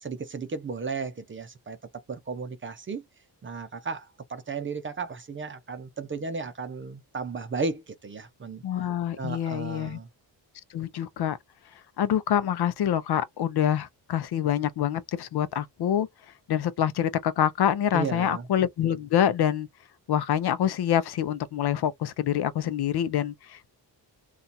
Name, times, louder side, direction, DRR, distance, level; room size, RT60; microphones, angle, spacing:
voice 1, 0.0-1.8 2.1-3.0 3.4-8.6 9.2-10.1 17.9-18.4, right 4 dB, 30° right, 0.5 m, -34 dB
voice 2, 8.6-10.0 10.7-11.4 12.0-16.1 16.5-19.7 20.1-23.7, left 10 dB, 65° left, 0.6 m, -26 dB
2.6 x 2.4 x 4.0 m
wide cardioid pair, 150°, 41 cm